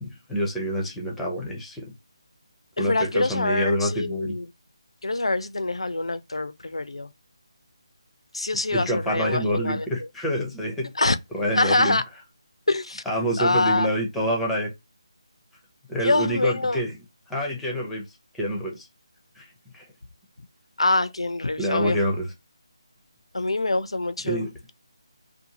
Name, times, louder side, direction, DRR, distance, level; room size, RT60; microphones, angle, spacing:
voice 1, 0.0-1.9 2.8-4.3 8.7-10.9 11.3-12.0 13.1-14.7 15.9-16.9 17.3-18.0 18.3-18.9 19.4-19.5 19.7-19.8 21.6-22.3 24.2-24.5, equal, 5° left, 0.5 m, -27 dB
voice 2, 2.8-4.5 5.0-7.1 8.3-9.9 11.0-11.2 11.6-12.0 12.7-13.0 13.4-13.9 16.0-16.8 20.8-22.0 23.3-24.4, left 2 dB, 85° left, 0.4 m, -25 dB
2.6 x 2.3 x 2.8 m
figure-of-eight pair, 155°, 3 cm